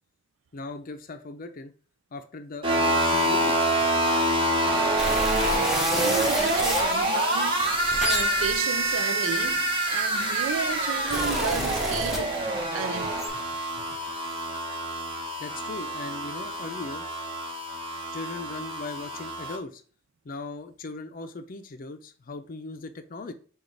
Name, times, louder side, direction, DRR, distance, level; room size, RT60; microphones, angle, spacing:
voice 1, 0.5-1.7 2.1-3.9 13.8-13.9 15.4-17.0 18.1-19.8 20.2-23.3, left 3 dB, 45° left, 0.5 m, -38 dB
sound 1, 2.6-19.6, right 1 dB, 25° right, 1.0 m, -26 dB
sound 2, 5.0-6.9 7.6-10.0 10.7-12.7 13.0-13.3, equal, ahead, 0.9 m, -31 dB
voice 2, 5.9-12.4 12.7-13.2, right 7 dB, 75° right, 0.4 m, -33 dB
6.2 x 2.4 x 3.3 m
head